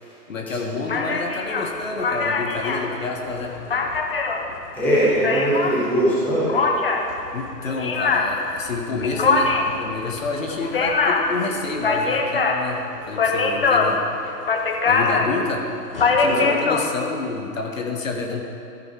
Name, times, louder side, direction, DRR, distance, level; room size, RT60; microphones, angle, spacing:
voice 1, 0.3-3.5 7.3-14.0 14.8-15.7 16.0-18.4, left 3 dB, 50° left, 1 dB, 1.3 m, -28 dB
sound 1, 0.9-5.8 6.5-16.8, left 4 dB, 35° left, 0.7 m, -23 dB
voice 2, 4.7-6.6 16.2-16.5, right 1 dB, 5° left, -10 dB, 1.2 m, -21 dB
14.0 x 5.4 x 4.7 m, 2.7 s
figure-of-eight pair, 130°, 50 cm